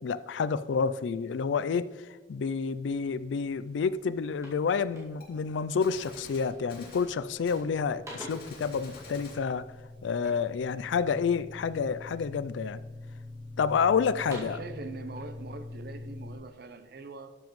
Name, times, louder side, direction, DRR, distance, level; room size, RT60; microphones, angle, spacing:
voice 1, 0.0-1.9 2.3-9.7 10.0-12.8 13.6-14.6, left 5 dB, 80° left, 0.4 m, -29 dB
sound 1, 3.5-3.6 3.9-5.5 6.1-6.4 6.8-7.3 7.6-8.6 10.2-11.4 11.9-12.5 13.0-13.7 14.1-14.7, equal, 15° right, 2.1 m, -48 dB
Gunshot gunfire, 5.2-5.3 5.8-7.1 7.5-7.6 8.3-9.4, left 2 dB, 55° left, 2.4 m, -48 dB
sound 2, 6.0-16.4, left 2 dB, 25° left, 1.0 m, -45 dB
voice 2, 14.3-17.3, right 3 dB, 55° right, 0.6 m, -42 dB
12.5 x 7.0 x 3.1 m
head